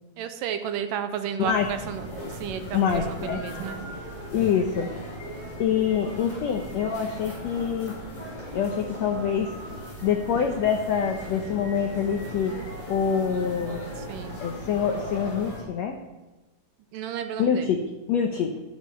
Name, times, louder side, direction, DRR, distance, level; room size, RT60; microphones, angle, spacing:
voice 1, 0.2-2.1 2.4-3.8 14.1-14.4 16.9-17.7, right 8 dB, 80° right, 8 dB, 2.2 m, -32 dB
sound 1, 1.4-15.6, equal, 10° left, 4.7 m, -38 dB
voice 2, 2.7-3.4 4.3-4.9 5.6-7.9 8.5-9.6 10.0-12.6 12.9-13.8 14.4-16.0 17.4-17.8 18.1-18.5, left 7 dB, 80° left, 3 dB, 1.5 m, -25 dB
12.5 x 9.5 x 5.5 m, 1.1 s
omnidirectional pair, 4.2 m